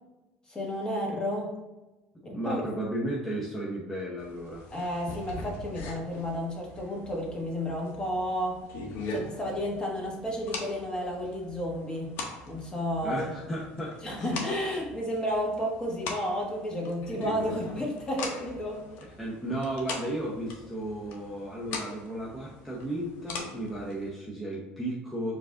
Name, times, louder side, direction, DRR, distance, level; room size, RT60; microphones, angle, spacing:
voice 1, 0.5-1.5 2.3-2.6 4.7-8.6 9.1-12.2 12.5-13.3 14.0-18.8, equal, 20° left, -1 dB, 1.1 m, -32 dB
voice 2, 2.2-4.6 13.0-14.4 19.2-25.4, right 1 dB, 5° left, -6 dB, 0.7 m, -34 dB
sound 1, 4.2-24.1, left 3 dB, 70° left, 0.8 m, -42 dB
4.6 x 2.5 x 3.6 m, 1.1 s
supercardioid pair, 105°, 4 cm